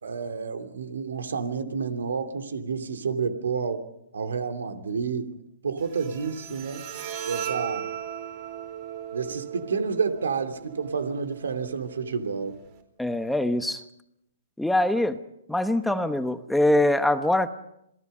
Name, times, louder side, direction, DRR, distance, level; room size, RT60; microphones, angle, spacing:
voice 1, 0.0-3.8 4.1-6.8 7.2-7.9 9.1-12.6, right 5 dB, 85° right, 7 dB, 2.9 m, -30 dB
Bowed string instrument, 5.8-12.8, right 9 dB, 40° right, 4.3 m, -38 dB
voice 2, 13.0-13.8 14.6-15.2 15.5-17.5, left 1 dB, ahead, 9 dB, 1.0 m, -23 dB
27.5 x 18.5 x 5.6 m, 0.81 s
hypercardioid pair, 140°, 0 cm